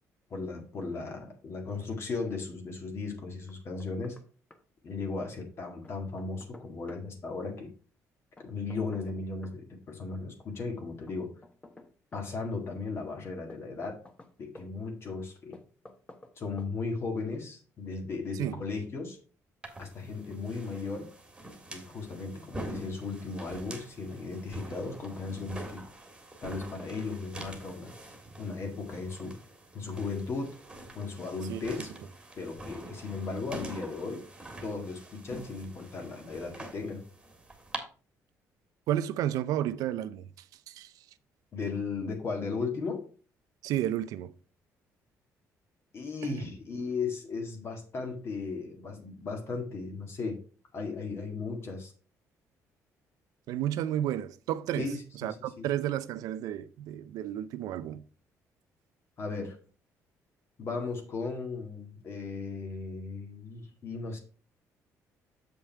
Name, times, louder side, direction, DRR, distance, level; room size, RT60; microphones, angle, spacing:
voice 1, 0.3-4.2 4.8-7.7 8.4-11.3 12.1-14.0 14.4-15.6 16.4-19.2 19.8-21.1 21.7-25.8 26.4-27.9 28.4-29.4 29.7-30.6 30.9-31.9 32.4-34.3 34.6-37.1 41.5-43.1 45.9-50.4 50.7-51.9 54.8-55.7 59.2-59.6 60.6-64.2, left 4 dB, 45° left, 1.8 m, -36 dB
Knock, 3.5-4.3 4.5-4.6 5.8-7.1 8.4-9.6 11.1-12.3 13.5-14.7 15.5-16.3 16.6-16.7, left 2 dB, 20° left, 1.0 m, -52 dB
sound 1, 19.6-37.8, right 1 dB, 15° right, 1.7 m, -45 dB
voice 2, 38.9-40.3 40.7-40.9 43.6-44.3 46.2-46.4 53.5-54.9 55.2-58.0, right 11 dB, 85° right, 0.5 m, -32 dB
7.2 x 5.3 x 4.6 m
cardioid pair, 125°, 6 cm